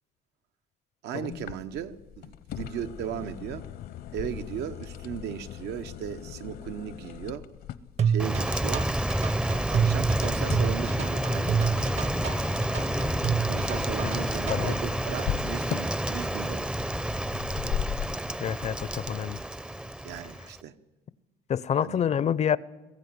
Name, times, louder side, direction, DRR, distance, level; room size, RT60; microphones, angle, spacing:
voice 1, 1.0-3.7 4.1-7.5 8.0-8.9 9.5-11.9 13.5-16.7 20.0-20.7 21.8-22.0, right 9 dB, 80° right, 1.0 m, -37 dB
sound 1, 1.3-18.2, left 10 dB, 65° left, 0.9 m, -39 dB
sound 2, 8.0-14.8, right 7 dB, 40° right, 0.8 m, -28 dB
Rain, 8.2-20.6, right 1 dB, 5° right, 0.6 m, -29 dB
voice 2, 18.4-19.4 21.5-22.6, left 8 dB, 40° left, 0.6 m, -27 dB
21.0 x 15.0 x 9.5 m
cardioid pair, 110°, 17 cm